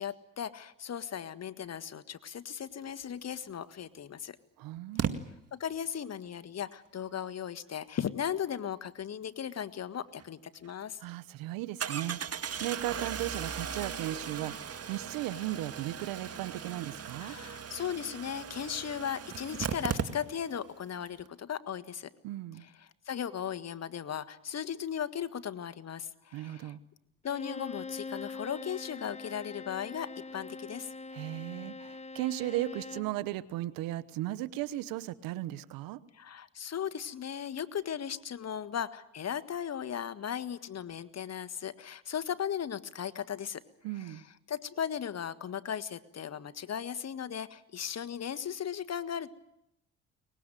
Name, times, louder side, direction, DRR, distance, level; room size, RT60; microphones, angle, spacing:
voice 1, 0.0-4.4 5.5-11.0 17.2-22.1 23.0-26.7 27.2-30.9 36.1-43.6 44.0-44.2 44.5-49.3, left 8 dB, 50° left, 14 dB, 1.6 m, -37 dB
Engine starting, 3.5-3.6 5.0-5.1 10.2-10.3 10.6-10.7 11.8-20.6 20.9-21.0 21.2-21.3, right 7 dB, 45° right, 2.1 m, -37 dB
voice 2, 4.6-5.2 11.0-17.4 22.2-22.7 26.3-26.8 31.1-36.0 43.8-44.2, right 15 dB, 85° right, 17 dB, 1.2 m, -36 dB
Bowed string instrument, 27.3-33.2, left 3 dB, 20° left, 1.4 m, -43 dB
23.5 x 20.5 x 9.2 m, 0.83 s
supercardioid pair, 70°, 33 cm